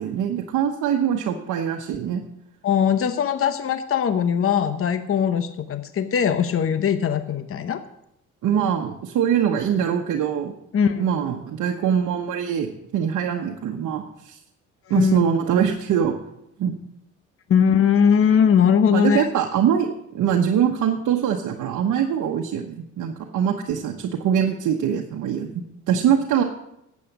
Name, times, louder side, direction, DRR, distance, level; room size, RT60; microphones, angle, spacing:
voice 1, 0.0-2.2 8.4-10.5 11.0-14.4 14.9-16.1 16.6-16.8 18.9-19.9 20.1-26.4, right 8 dB, 75° right, 2 dB, 1.1 m, -23 dB
voice 2, 2.6-7.8 10.7-11.1 14.9-15.2 17.5-19.3, left 7 dB, 45° left, 10 dB, 0.9 m, -20 dB
12.0 x 8.4 x 6.0 m, 0.80 s
cardioid pair, 90°, 30 cm